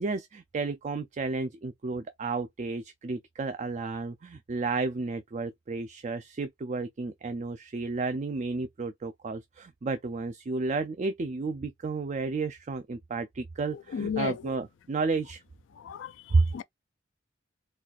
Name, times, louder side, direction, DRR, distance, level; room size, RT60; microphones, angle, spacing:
voice 1, 0.0-15.4 16.3-16.5, right 3 dB, 40° right, 0.4 m, -31 dB
voice 2, 13.7-14.4 15.7-16.6, left 7 dB, 75° left, 0.3 m, -35 dB
4.1 x 2.4 x 2.4 m
head